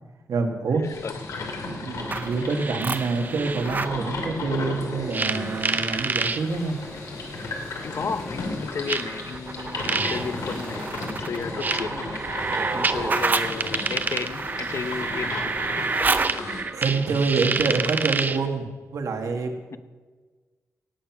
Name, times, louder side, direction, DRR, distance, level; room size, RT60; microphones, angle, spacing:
voice 1, 0.3-0.9 1.7-6.8 16.7-19.5, right 4 dB, 80° right, 4 dB, 1.7 m, -26 dB
sound 1, 0.8-16.6, left 3 dB, 75° left, 2.7 m, -35 dB
voice 2, 0.8-1.1 7.8-12.2 12.7-15.5 19.7-19.8, left 5 dB, 50° left, 11 dB, 0.7 m, -33 dB
sound 2, 2.0-4.0 5.1-6.4 7.5-7.6 8.9-18.5, right 4 dB, 35° right, 0.7 m, -28 dB
sound 3, 5.4-15.0, left 1 dB, 25° left, 4.7 m, -44 dB
17.5 x 9.0 x 6.0 m, 1.4 s
wide cardioid pair, 150°, 6 cm